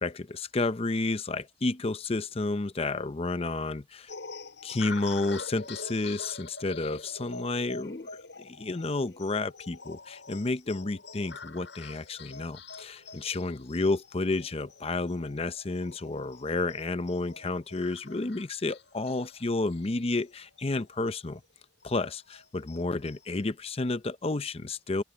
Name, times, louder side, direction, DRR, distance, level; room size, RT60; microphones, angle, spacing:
voice 1, 0.0-4.1 4.6-8.1 8.4-21.4 21.8-25.0, left 2 dB, 35° left, 0.7 m, -31 dB
sound 1, 4.1-21.0 21.3-21.4 21.8-23.4, left 4 dB, 85° left, 6.6 m, -46 dB
head